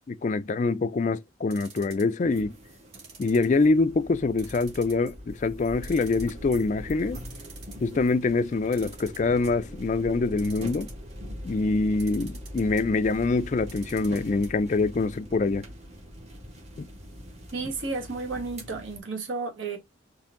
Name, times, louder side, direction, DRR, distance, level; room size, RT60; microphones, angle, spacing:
voice 1, 0.1-2.6 3.2-7.2 7.8-10.9 11.4-15.7 16.8-16.9, left 3 dB, 35° left, 0.3 m, -25 dB
sound 1, 1.5-2.2 2.9-3.9 4.4-5.1 5.4-5.5 5.8-6.6 7.0-7.1 7.2-7.9 8.7-9.6 10.3-11.1 12.0-12.8 13.6-14.5 14.8-14.9 15.1-15.2, right 5 dB, 55° right, 2.3 m, -47 dB
sound 2, 2.2-19.0, equal, 35° right, 1.6 m, -42 dB
voice 2, 17.5-19.8, right 3 dB, 70° right, 1.9 m, -32 dB
4.4 x 3.2 x 3.6 m
head